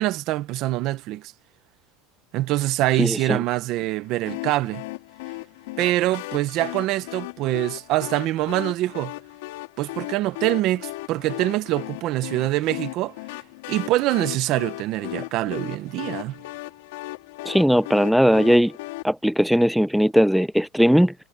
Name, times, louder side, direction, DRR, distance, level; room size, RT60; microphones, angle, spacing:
voice 1, 0.0-1.3 2.3-4.8 5.8-9.1 9.8-13.1 13.7-16.3, right 16 dB, 40° right, 1.0 m, -24 dB
voice 2, 3.0-3.4 17.5-18.7 19.0-21.1, equal, ahead, 0.4 m, -18 dB
sound 1, 4.3-19.0, left 21 dB, 80° left, 3.7 m, -36 dB
cardioid pair, 175°, 0 cm